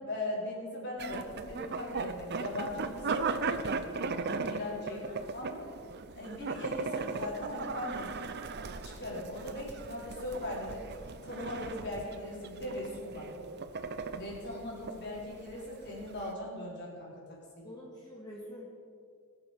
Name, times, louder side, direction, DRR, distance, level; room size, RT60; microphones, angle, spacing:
voice 1, 0.0-3.4 3.6-5.0 5.3-5.7 6.2-8.4 8.8-10.8 11.2-13.3 14.1-17.7, left 1 dB, 50° left, -4 dB, 4.0 m, -39 dB
sound 1, 1.0-16.3, right 4 dB, 50° right, 0.7 m, -38 dB
voice 2, 4.8-5.2 17.6-18.7, left 1 dB, 20° left, -6 dB, 2.2 m, -47 dB
20.0 x 7.6 x 5.2 m, 2.3 s
head